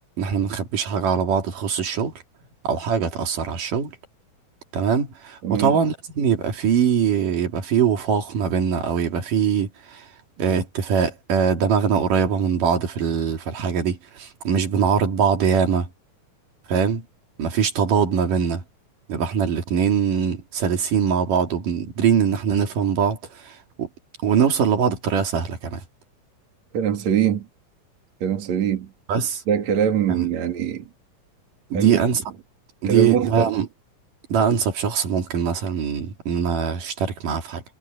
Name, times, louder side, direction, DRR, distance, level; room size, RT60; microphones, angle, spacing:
voice 1, 0.2-2.1 2.6-3.9 4.7-10.1 10.4-15.9 16.7-17.1 17.4-18.6 19.1-23.9 24.2-25.8 29.1-29.4 30.1-30.3 31.7-32.2 32.8-33.7 34.3-37.6, right 7 dB, 80° right, 4.1 m, -22 dB
voice 2, 5.4-5.8 26.7-27.5 28.2-28.9 29.5-30.9 31.7-32.0 32.8-33.5, right 9 dB, 60° right, 3.6 m, -23 dB
omnidirectional pair, 3.7 m